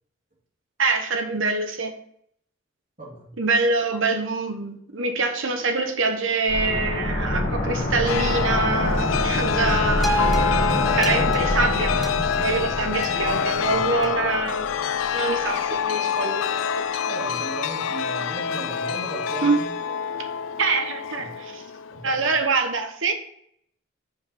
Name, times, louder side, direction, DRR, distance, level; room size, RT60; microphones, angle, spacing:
voice 1, 0.8-1.9 3.4-10.2 10.9-14.7 15.1-16.7 16.9-17.2 19.4-19.6 20.6-21.6 22.0-23.1, right 3 dB, 70° right, 5 dB, 1.1 m, -25 dB
voice 2, 3.0-3.4 7.2-7.7 13.1-14.1 17.1-19.6 20.0-20.1 21.2-21.3 21.9-22.4, right 1 dB, 35° right, -4 dB, 2.7 m, -37 dB
sound 1, 6.5-15.2 15.5-15.6, left 1 dB, 40° left, 1.5 m, -27 dB
Chime, 8.0-22.3, left 7 dB, 75° left, 0.3 m, -26 dB
sound 2, 10.0-14.4 15.0-15.1, equal, ahead, 0.6 m, -31 dB
5.4 x 4.7 x 6.2 m, 0.69 s
head